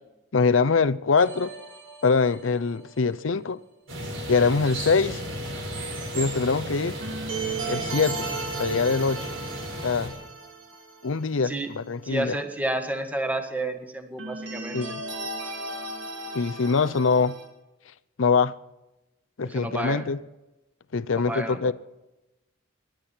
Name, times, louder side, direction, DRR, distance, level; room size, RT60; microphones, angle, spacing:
voice 1, 0.3-1.5 2.0-3.6 4.3-5.2 6.1-7.0 7.7-8.3 8.6-9.3 9.8-10.1 11.0-12.4 14.7-15.0 16.3-17.4 18.2-18.5 19.4-20.2 20.9-21.7, left 4 dB, 75° left, 0.6 m, -23 dB
sound 1, 1.2-3.0 7.0-11.4 11.7-11.8 14.2-17.5, right 3 dB, 65° right, 3.2 m, -36 dB
sound 2, 3.9-10.1, right 1 dB, 80° right, 5.3 m, -34 dB
voice 2, 11.4-11.7 12.0-14.8 19.4-20.0 21.3-21.7, right 1 dB, 10° right, 1.5 m, -30 dB
25.5 x 11.5 x 4.4 m
head